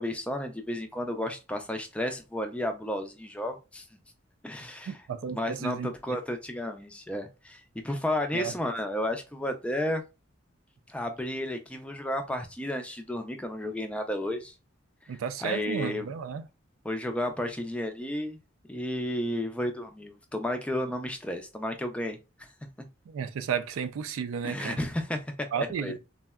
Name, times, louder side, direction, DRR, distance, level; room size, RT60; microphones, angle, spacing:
voice 1, 0.0-3.9 4.4-4.9 5.3-10.0 10.9-14.5 15.1-16.1 16.8-18.4 18.7-22.5 24.4-26.0, left 1 dB, 5° left, 0.3 m, -32 dB
voice 2, 4.9-5.9 8.3-8.5 15.1-16.5 23.1-24.8 25.5-26.0, right 7 dB, 85° right, 0.3 m, -33 dB
3.5 x 2.1 x 2.2 m
head